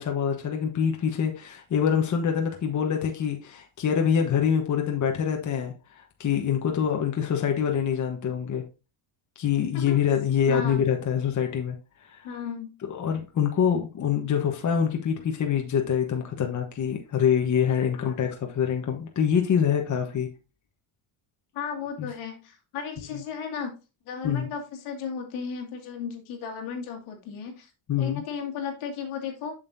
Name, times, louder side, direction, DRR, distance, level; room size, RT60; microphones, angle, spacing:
voice 1, 0.0-8.6 9.4-11.8 12.1-12.3 12.9-20.3 22.0-22.1 24.2-24.5 27.9-28.2, left 8 dB, 35° left, 1.2 m, -25 dB
voice 2, 10.5-10.8 12.2-12.8 18.0-18.3 21.5-23.8 24.1-27.7 28.0-29.5, left 6 dB, 80° left, 2.3 m, -35 dB
7.3 x 6.5 x 2.7 m
cardioid pair, 120°, 48 cm